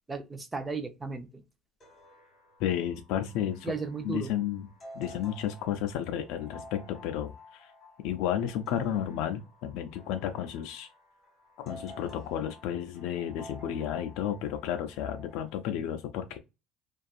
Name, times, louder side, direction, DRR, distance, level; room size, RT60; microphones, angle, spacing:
voice 1, 0.1-1.4 3.6-4.3, right 4 dB, 15° right, 0.5 m, -35 dB
sound 1, 1.8-15.5, left 1 dB, 25° left, 1.4 m, -52 dB
voice 2, 2.6-3.7 4.0-7.7 8.0-10.9 11.6-16.4, left 10 dB, 80° left, 0.3 m, -32 dB
2.5 x 2.3 x 2.4 m
cardioid pair, 130°, 0 cm